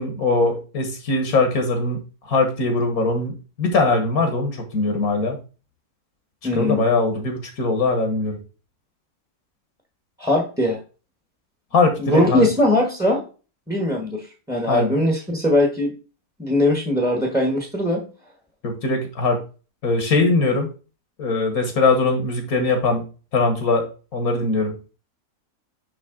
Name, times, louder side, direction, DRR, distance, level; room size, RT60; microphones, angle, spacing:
voice 1, 0.0-5.4 6.5-8.4 11.7-12.4 14.7-14.9 18.6-19.4 19.8-20.7 21.2-23.0 23.3-24.7, left 3 dB, 70° left, 5 dB, 1.8 m, -21 dB
voice 2, 6.4-6.8 10.2-10.8 12.0-13.2 13.7-15.9 16.4-18.0, left 1 dB, 5° right, 1 dB, 1.1 m, -20 dB
9.6 x 3.5 x 3.8 m, 0.35 s
omnidirectional pair, 1.6 m